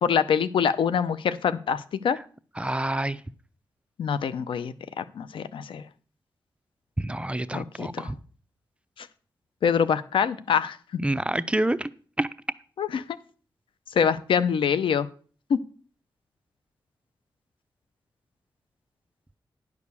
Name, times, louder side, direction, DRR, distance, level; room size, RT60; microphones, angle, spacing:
voice 1, 0.0-2.2 4.0-5.8 7.5-8.1 9.0-9.1 9.6-10.8 12.8-13.0 13.9-15.1 15.5-15.6, left 7 dB, 90° left, 0.6 m, -25 dB
voice 2, 2.6-3.2 7.0-8.2 11.0-11.9 12.2-12.3, right 1 dB, 15° right, 0.6 m, -27 dB
10.5 x 4.8 x 6.9 m
cardioid pair, 55°, 9 cm